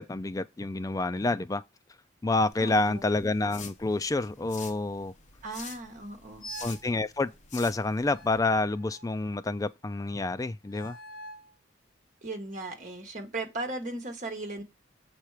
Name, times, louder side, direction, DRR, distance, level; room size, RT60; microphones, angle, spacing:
voice 1, 0.0-1.6 2.2-5.1 6.6-11.0, left 2 dB, 15° left, 0.3 m, -28 dB
sound 1, 2.5-8.4, left 6 dB, 35° left, 1.2 m, -48 dB
voice 2, 2.6-3.0 5.4-6.5 12.2-14.6, right 2 dB, 35° right, 1.6 m, -37 dB
sound 2, 6.4-6.9 8.1-9.3 10.6-11.5, right 1 dB, 85° left, 1.3 m, -45 dB
7.4 x 4.4 x 4.9 m
head